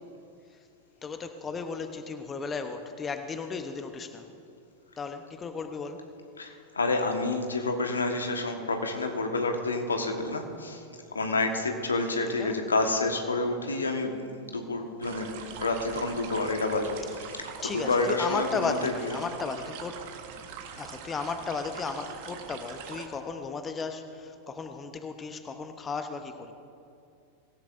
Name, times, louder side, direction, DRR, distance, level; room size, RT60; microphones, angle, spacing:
voice 1, 1.0-4.2 5.0-6.1 12.4-12.6 16.0-16.2 17.6-20.0 20.8-26.5, left 4 dB, 20° left, 8 dB, 0.9 m, -35 dB
voice 2, 6.4-10.8 11.1-16.9 17.7-19.1, left 2 dB, 75° left, 4 dB, 1.5 m, -29 dB
sound 1, 15.0-23.1, right 7 dB, 50° right, 1.4 m, -43 dB
25.0 x 16.0 x 2.7 m, 2.6 s
figure-of-eight pair, 90°, 0 cm